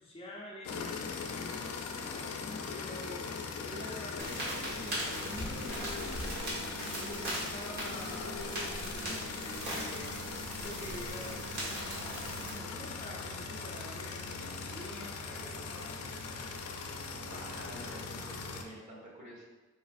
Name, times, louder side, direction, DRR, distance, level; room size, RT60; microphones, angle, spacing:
voice 1, 0.0-16.4, left 1 dB, 25° left, -4 dB, 0.5 m, -48 dB
sound 1, 0.6-18.6, left 4 dB, 90° left, 0.4 m, -40 dB
sound 2, 4.2-12.5, right 1 dB, 50° right, 1.4 m, -40 dB
voice 2, 16.9-19.4, right 1 dB, 35° right, -5 dB, 1.0 m, -49 dB
4.6 x 2.4 x 2.4 m, 1.2 s
head